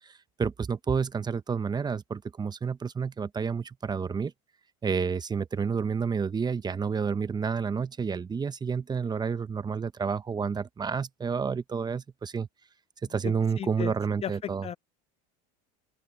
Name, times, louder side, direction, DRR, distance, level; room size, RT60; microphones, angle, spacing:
voice 1, 0.4-4.3 4.8-12.5 13.1-14.6, right 5 dB, 20° right, 1.0 m, -30 dB
voice 2, 13.2-13.9 14.2-14.8, left 9 dB, 30° left, 0.5 m, -36 dB
open air
supercardioid pair, 100°, 19 cm